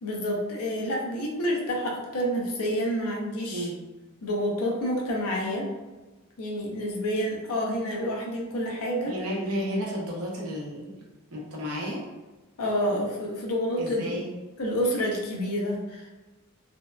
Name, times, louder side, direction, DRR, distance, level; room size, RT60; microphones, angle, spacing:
voice 1, 0.0-3.7 4.2-5.7 6.4-9.1 12.6-14.2 14.6-16.1, equal, 75° left, -1 dB, 0.6 m, -28 dB
voice 2, 9.1-11.0 11.3-12.1 13.8-14.3, equal, 70° right, -3 dB, 0.7 m, -32 dB
2.6 x 2.1 x 2.2 m, 1.2 s
head